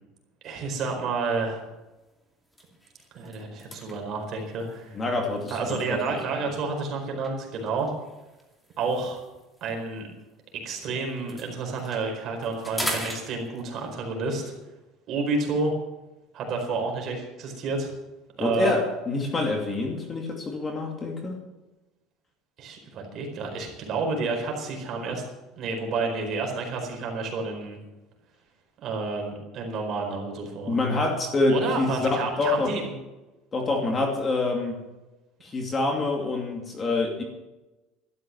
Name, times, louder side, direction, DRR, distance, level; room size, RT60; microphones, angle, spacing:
voice 1, 0.4-1.6 3.1-5.0 5.5-7.9 8.8-9.2 9.6-10.1 10.5-14.4 15.1-15.7 16.3-17.9 18.4-18.7 22.6-25.2 25.6-27.8 28.8-30.8 31.5-32.9, right 4 dB, 40° right, 2 dB, 4.5 m, -30 dB
sound 1, 1.3-1.5 2.0-2.1 2.4-6.4 7.2-10.8 11.1-13.9, equal, 5° left, 2.6 m, -40 dB
voice 2, 4.9-5.8 18.4-21.4 30.6-32.7 33.5-34.8 35.4-37.2, left 3 dB, 20° left, 2 dB, 2.6 m, -26 dB
13.0 x 12.5 x 7.2 m, 1.1 s
cardioid pair, 160°, 0 cm